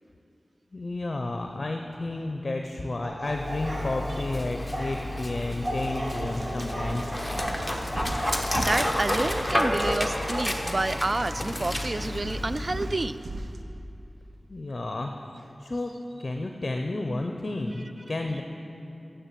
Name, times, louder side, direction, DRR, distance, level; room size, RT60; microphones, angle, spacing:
voice 1, 0.7-7.2 14.5-15.1 15.4-15.9 16.2-18.4, left 2 dB, 50° left, 3 dB, 0.6 m, -31 dB
sound 1, 3.0-4.2 4.7-4.9 5.6-6.9 7.4-7.6 8.1-9.3 9.8-9.9, equal, 65° right, 2.7 m, -35 dB
Dog, 3.3-13.2, left 1 dB, 10° left, 1.0 m, -31 dB
sound 2, 5.5-5.7 6.1-13.6, right 2 dB, 80° right, 0.6 m, -40 dB
voice 2, 8.6-13.2, right 2 dB, 40° right, 14 dB, 0.3 m, -29 dB
10.5 x 7.1 x 7.5 m, 2.7 s
wide cardioid pair, 70°, 0 cm